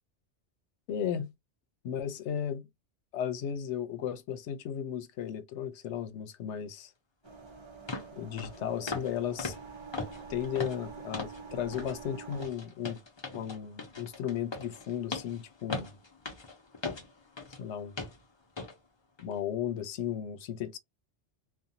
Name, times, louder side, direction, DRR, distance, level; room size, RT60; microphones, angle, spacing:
voice 1, 0.9-1.3 1.8-2.6 3.1-6.9 8.1-9.5 10.3-13.0 13.3-15.9 17.6-18.0 19.2-20.8, left 9 dB, 80° left, 0.9 m, -35 dB
sound 1, 7.2-12.5, right 5 dB, 30° right, 0.6 m, -47 dB
sound 2, 7.3-7.4 7.9-8.1 8.4-8.6 8.9-9.1 9.4-11.4 11.7-12.0 12.3-17.6 18.0-18.2 18.6-18.7 19.2-19.3, left 3 dB, 30° left, 0.7 m, -39 dB
2.5 x 2.3 x 2.7 m
omnidirectional pair, 1.2 m